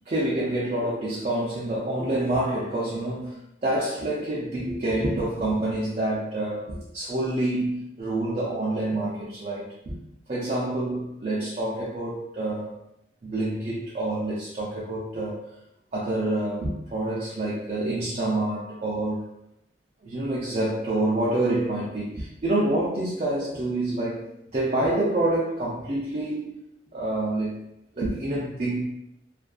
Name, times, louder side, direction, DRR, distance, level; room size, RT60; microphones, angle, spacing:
voice 1, 0.1-10.0 10.3-12.7 13.2-15.5 15.9-19.3 20.0-26.6 26.9-27.6 28.0-28.9, right 1 dB, 40° right, -6 dB, 0.5 m, -27 dB
2.5 x 2.4 x 2.2 m, 0.80 s
head